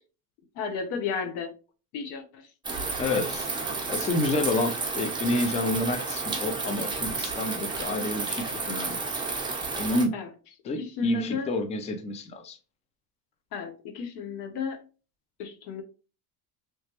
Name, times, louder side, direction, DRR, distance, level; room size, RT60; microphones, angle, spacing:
voice 1, 0.5-1.6 1.9-2.5 8.0-8.1 10.1-10.3 10.8-11.5 13.5-14.8 15.4-15.8, left 5 dB, 90° left, 0.9 m, -33 dB
sound 1, 2.6-10.1, right 3 dB, 10° right, 0.8 m, -31 dB
voice 2, 3.0-3.5 3.9-9.0 9.8-10.1 10.7-12.6, left 2 dB, 15° left, 0.4 m, -29 dB
3.2 x 3.0 x 2.9 m
cardioid pair, 135°, 41 cm